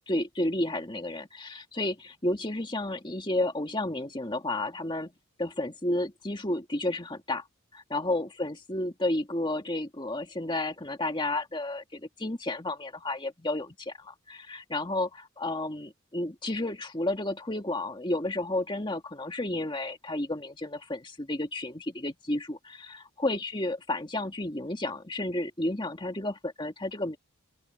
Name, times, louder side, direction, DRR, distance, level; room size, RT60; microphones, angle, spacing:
voice 1, 0.1-5.1 5.4-7.4 7.7-27.2, left 1 dB, 20° left, 2.0 m, -32 dB
open air
head